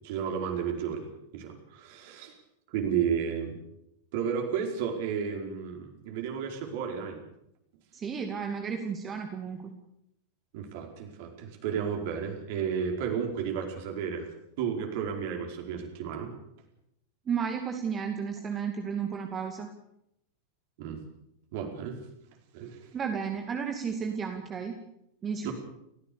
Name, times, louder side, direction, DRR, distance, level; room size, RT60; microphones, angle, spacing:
voice 1, 0.0-2.3 2.7-3.6 4.1-7.2 10.5-14.3 14.6-16.3 20.8-21.0 21.5-22.0 22.5-22.9 25.4-25.5, right 7 dB, 50° right, 3 dB, 4.9 m, -32 dB
voice 2, 7.9-9.7 17.3-19.7 22.9-24.7 25.2-25.5, right 6 dB, 25° right, 4 dB, 2.4 m, -33 dB
29.5 x 15.5 x 7.0 m, 0.78 s
figure-of-eight pair, 90°, 0 cm